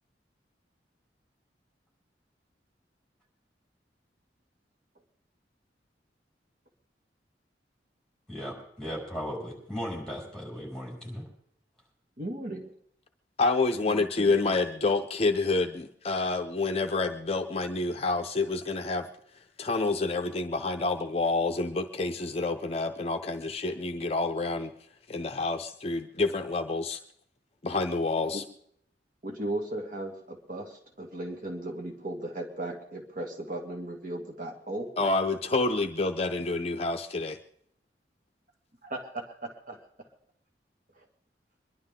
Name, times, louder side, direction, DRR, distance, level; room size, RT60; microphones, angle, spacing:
voice 1, 8.3-11.2, equal, 5° left, -3 dB, 6.3 m, -37 dB
voice 2, 12.2-12.7 13.8-14.3 28.3-28.4 29.2-34.9 38.8-39.8, right 1 dB, 50° right, 2 dB, 1.9 m, -36 dB
voice 3, 13.4-19.1 19.6-24.7 25.1-27.0 27.6-28.4 35.0-37.4, left 3 dB, 35° left, 6 dB, 0.6 m, -28 dB
25.0 x 11.5 x 3.7 m, 0.71 s
head